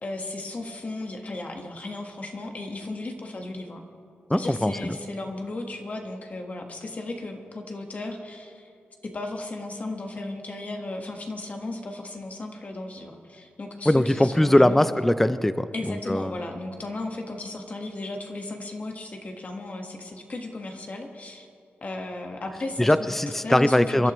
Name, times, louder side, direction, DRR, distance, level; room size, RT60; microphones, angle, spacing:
voice 1, 0.0-3.8 4.3-8.7 9.0-14.9 15.7-21.5 21.8-23.1 23.4-24.1, left 2 dB, 40° left, 3 dB, 1.4 m, -35 dB
voice 2, 4.3-5.0 13.9-16.4 22.8-24.1, left 1 dB, 5° left, 13 dB, 0.4 m, -21 dB
27.0 x 12.0 x 3.1 m, 2.5 s
wide cardioid pair, 125°, 4 cm